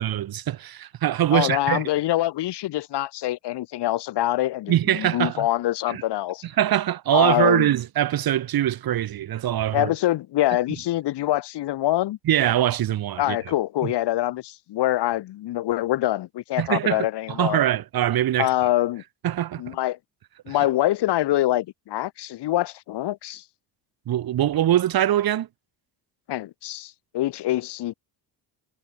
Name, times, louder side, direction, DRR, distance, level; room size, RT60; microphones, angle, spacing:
voice 1, 0.0-1.8 4.7-5.5 5.9-6.0 6.4-9.9 12.2-13.4 13.8-13.9 16.6-18.5 19.2-19.8 20.5-20.7 24.1-25.5, right 12 dB, 55° right, 1.7 m, -23 dB
voice 2, 1.3-6.4 7.1-7.7 9.7-12.2 13.2-17.6 18.4-19.0 19.6-20.0 20.5-23.4 26.3-27.9, left 15 dB, 70° left, 1.6 m, -25 dB
cardioid pair, 140°, 43 cm